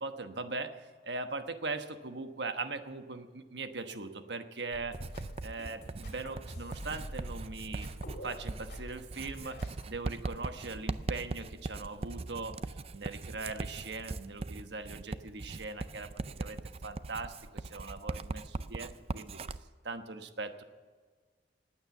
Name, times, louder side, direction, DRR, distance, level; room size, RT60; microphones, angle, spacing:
voice 1, 0.0-7.9 8.2-16.1 16.4-19.4 19.8-20.6, right 3 dB, 75° right, 8 dB, 1.2 m, -40 dB
sound 1, 4.7-9.8, equal, 60° left, 2.4 m, -46 dB
Writing, 4.9-19.6, right 3 dB, 35° right, 0.4 m, -40 dB
19.0 x 9.0 x 7.1 m, 1.5 s
head